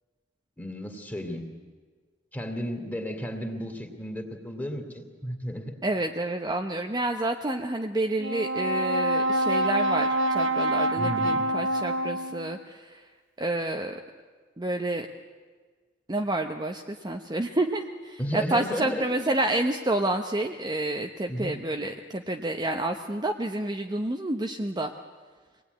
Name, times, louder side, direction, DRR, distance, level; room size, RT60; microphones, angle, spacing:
voice 1, 0.6-1.5 2.3-5.7 11.0-11.4 18.2-19.3 21.3-21.6, equal, 10° left, 4 dB, 2.7 m, -33 dB
voice 2, 5.8-13.0 13.4-14.0 14.6-15.1 16.1-24.9, right 1 dB, 20° right, 3 dB, 0.9 m, -29 dB
Brass instrument, 8.2-12.6, right 1 dB, 70° right, 1.0 m, -26 dB
25.5 x 19.5 x 9.5 m, 1.5 s
head